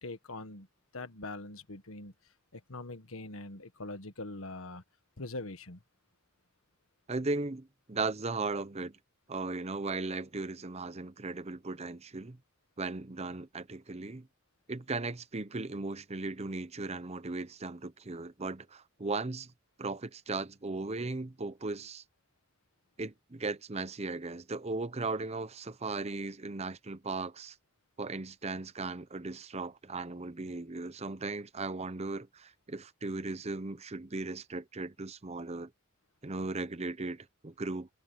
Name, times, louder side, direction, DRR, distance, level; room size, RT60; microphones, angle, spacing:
voice 1, 0.0-0.7 0.9-2.1 2.5-4.8 5.2-5.8, left 2 dB, 80° left, 1.6 m, -42 dB
voice 2, 7.1-9.0 9.3-12.4 12.8-14.3 14.7-19.5 19.8-22.0 23.0-27.5 28.0-35.7 36.2-37.9, right 3 dB, 30° right, 0.8 m, -37 dB
head